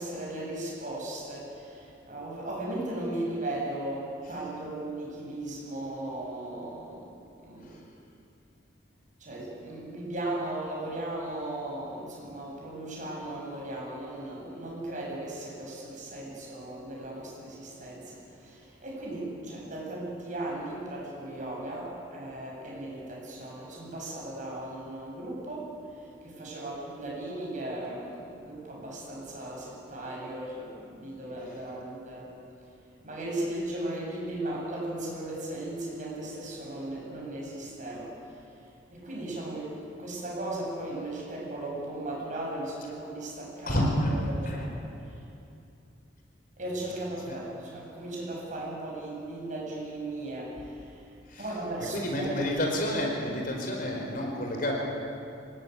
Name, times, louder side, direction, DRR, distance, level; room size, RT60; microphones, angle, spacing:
voice 1, 0.0-7.1 7.4-7.8 9.2-32.4 33.0-38.2 38.9-44.8 45.1-45.2 46.6-51.0 51.4-52.5, right 1 dB, 40° right, -2 dB, 7.8 m, -37 dB
voice 2, 43.7-44.1 44.4-44.7 47.3-47.4 51.3-51.5 51.9-54.7, left 1 dB, 50° left, 0 dB, 4.9 m, -29 dB
26.0 x 19.0 x 9.6 m, 2.6 s
head